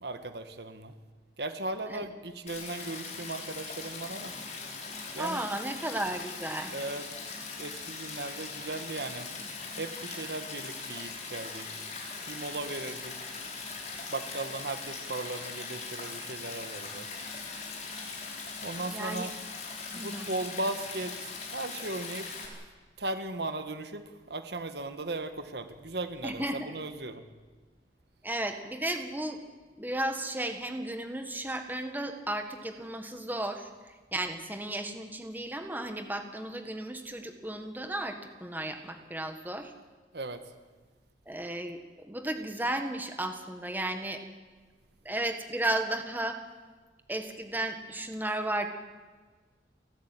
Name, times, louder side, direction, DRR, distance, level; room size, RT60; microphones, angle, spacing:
voice 1, 0.0-0.9 1.4-4.3 5.1-5.4 6.7-7.1 7.6-9.3 9.8-11.8 12.3-13.2 14.1-17.1 18.3-19.3 19.9-22.3 23.0-27.2 40.1-40.4, right 2 dB, 65° right, 9 dB, 1.5 m, -37 dB
Stream, 2.5-22.5, left 4 dB, 40° left, 4.9 m, -40 dB
voice 2, 5.2-6.7 18.9-19.3 19.9-20.3 26.2-26.7 28.2-29.4 29.8-33.7 34.1-39.7 41.3-41.8 42.0-44.2 45.0-46.4 47.1-48.7, right 1 dB, 10° right, 6 dB, 1.6 m, -34 dB
30.0 x 12.5 x 9.1 m, 1.4 s
head